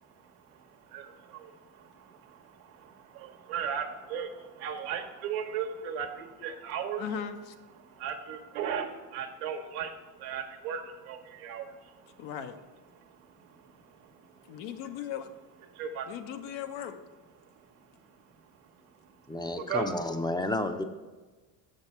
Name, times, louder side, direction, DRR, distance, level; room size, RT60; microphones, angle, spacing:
voice 1, 0.0-7.0 7.8-12.3 12.9-14.6 15.7-16.1 17.5-17.7 19.5-19.9, right 7 dB, 85° right, 3 dB, 1.2 m, -38 dB
voice 2, 7.0-7.5 12.2-12.6 14.5-15.3 16.1-17.0, left 8 dB, 70° left, 7 dB, 0.9 m, -37 dB
voice 3, 19.3-20.8, left 2 dB, 10° left, 8 dB, 0.6 m, -31 dB
7.0 x 6.5 x 4.4 m, 1.3 s
supercardioid pair, 90°, 44 cm